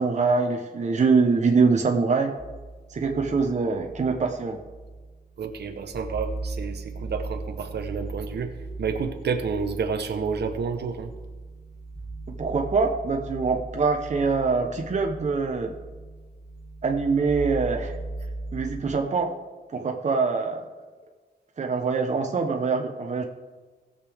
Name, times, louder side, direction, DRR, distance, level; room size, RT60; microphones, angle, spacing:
voice 1, 0.0-2.4 2.9-4.6 12.4-15.7 16.8-17.9 18.5-19.3 19.7-20.6 21.6-23.2, right 4 dB, 45° right, 2 dB, 0.9 m, -24 dB
sound 1, 2.4-18.8, right 2 dB, 15° left, 2.5 m, -38 dB
voice 2, 5.4-8.5 8.8-11.1 19.7-19.8, right 5 dB, 85° right, 6 dB, 0.9 m, -30 dB
18.5 x 6.7 x 3.5 m, 1.4 s
wide cardioid pair, 140°, 17 cm